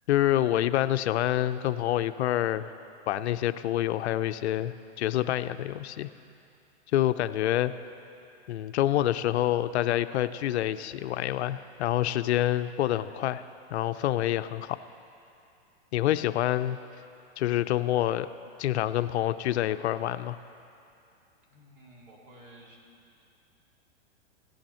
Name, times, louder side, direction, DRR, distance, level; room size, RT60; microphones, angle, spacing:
voice 1, 0.1-2.7 3.1-6.1 6.9-7.7 8.5-13.4 13.7-14.8 15.9-16.8 17.4-18.3 18.6-20.4, left 13 dB, 75° left, 12 dB, 0.5 m, -27 dB
voice 2, 21.5-22.8, right 1 dB, 50° right, -2 dB, 2.4 m, -53 dB
16.0 x 9.1 x 4.3 m, 2.6 s
supercardioid pair, 160°, 34 cm